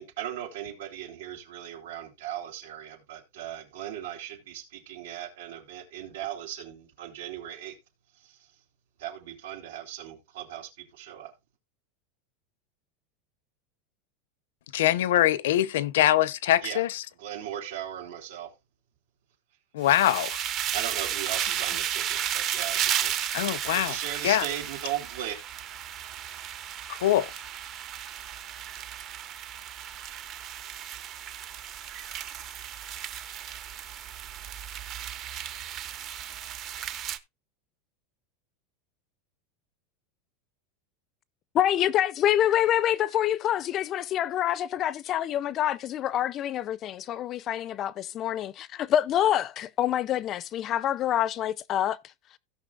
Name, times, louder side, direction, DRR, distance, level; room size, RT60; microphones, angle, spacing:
voice 1, 0.0-7.8 8.2-8.4 9.0-11.3 16.6-16.8 17.2-18.5 20.7-23.2 23.7-25.4, right 11 dB, 85° right, 3.2 m, -37 dB
voice 2, 14.7-17.0 19.7-20.4 23.3-24.0 24.2-24.4 26.9-27.3, left 13 dB, 85° left, 0.7 m, -23 dB
sound 1, 19.8-37.2, right 10 dB, 30° right, 0.7 m, -34 dB
voice 3, 41.5-52.0, left 11 dB, 25° left, 0.5 m, -26 dB
16.5 x 5.8 x 2.4 m
supercardioid pair, 175°, 0 cm